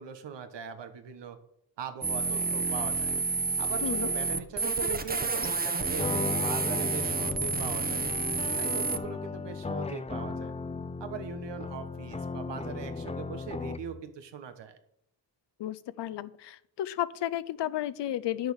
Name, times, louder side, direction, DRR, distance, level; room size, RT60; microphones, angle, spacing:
voice 1, 0.0-1.4 1.8-3.1 3.6-8.0 8.5-10.5 11.0-14.8, right 7 dB, 75° right, 9 dB, 1.5 m, -40 dB
sound 1, 2.0-9.0, right 4 dB, 20° right, 1.0 m, -30 dB
voice 2, 3.8-4.1 15.6-18.5, left 12 dB, 75° left, 17 dB, 0.7 m, -33 dB
sound 2, 6.0-14.0, left 4 dB, 15° left, 0.5 m, -36 dB
9.6 x 6.4 x 6.4 m, 0.73 s
cardioid pair, 90°, 43 cm